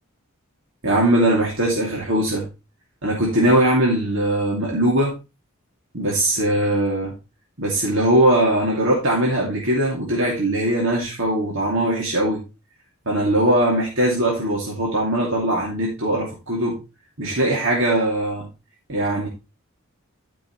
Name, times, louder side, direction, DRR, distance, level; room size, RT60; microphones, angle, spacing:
voice 1, 0.8-2.5 3.0-5.2 5.9-7.1 7.6-12.4 13.1-16.8 17.2-18.5 18.9-19.3, right 1 dB, 65° right, -3 dB, 2.7 m, -20 dB
12.5 x 6.1 x 3.2 m, 0.27 s
head